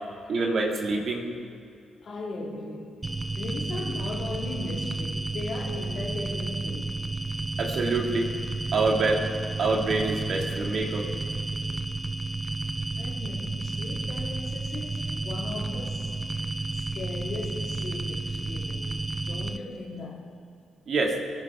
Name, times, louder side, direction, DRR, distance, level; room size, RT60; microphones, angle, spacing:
voice 1, 0.3-1.3 7.6-8.3 8.7-9.2 9.6-11.1 20.9-21.2, right 3 dB, 60° right, 2.2 m, -26 dB
voice 2, 2.0-7.0 13.0-16.1 16.7-20.2, left 2 dB, 55° left, 2.8 m, -37 dB
sound 1, 3.0-19.6, right 2 dB, 25° right, 0.9 m, -32 dB
22.5 x 10.0 x 3.6 m
hypercardioid pair, 45°, 0 cm